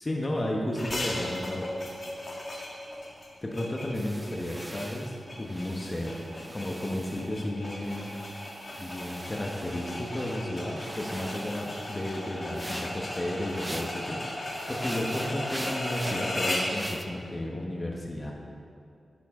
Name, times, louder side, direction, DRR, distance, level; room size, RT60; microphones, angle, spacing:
voice 1, 0.0-1.7 3.4-6.2 6.5-8.1 8.8-18.3, left 1 dB, 30° left, -1 dB, 1.2 m, -33 dB
sound 1, 0.7-16.8, left 1 dB, 45° left, 1.7 m, -36 dB
sound 2, 3.9-7.5 7.8-10.4 10.8-14.1 14.4-17.0, right 1 dB, 15° right, 0.6 m, -43 dB
9.6 x 9.2 x 3.7 m, 2.4 s
cardioid pair, 60°, 0 cm